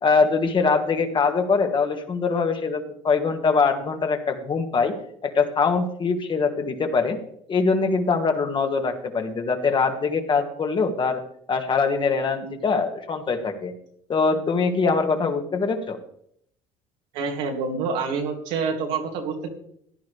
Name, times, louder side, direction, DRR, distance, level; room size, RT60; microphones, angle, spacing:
voice 1, 0.0-4.9 5.2-7.2 7.5-11.2 11.5-13.7 14.1-16.0, left 4 dB, 35° left, 5 dB, 2.0 m, -23 dB
voice 2, 17.1-19.5, right 5 dB, 80° right, 2 dB, 2.6 m, -27 dB
15.5 x 10.5 x 3.4 m, 0.67 s
supercardioid pair, 85°, 14 cm